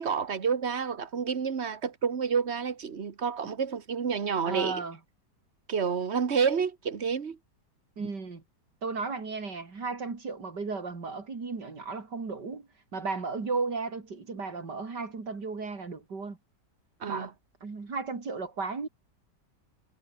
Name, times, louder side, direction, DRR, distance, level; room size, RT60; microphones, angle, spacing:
voice 1, 0.0-4.8 5.7-7.4 17.0-17.3, right 6 dB, 40° right, 1.6 m, -29 dB
voice 2, 4.5-5.0 8.0-8.4 8.8-16.4 17.1-17.3 17.6-18.9, right 4 dB, 75° right, 4.0 m, -35 dB
omnidirectional pair, 1.9 m